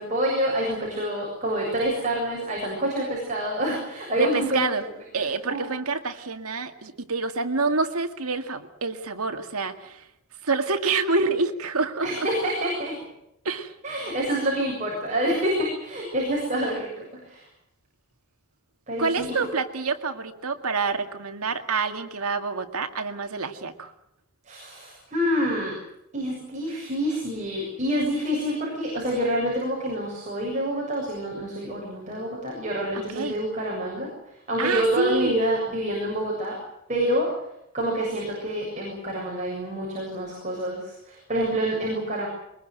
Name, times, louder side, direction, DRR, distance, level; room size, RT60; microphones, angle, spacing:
voice 1, 0.0-4.6 5.5-5.7 12.0-13.0 13.8-17.4 18.9-19.5 24.5-25.8 26.1-36.6 36.9-37.3 37.7-42.3, right 1 dB, 35° right, -3 dB, 7.2 m, -27 dB
voice 2, 4.2-4.8 5.1-10.1 10.4-12.3 13.4-13.7 19.0-23.9 32.9-33.4 34.6-35.4, right 4 dB, 90° right, 7 dB, 2.1 m, -27 dB
23.0 x 22.0 x 7.9 m, 0.81 s
head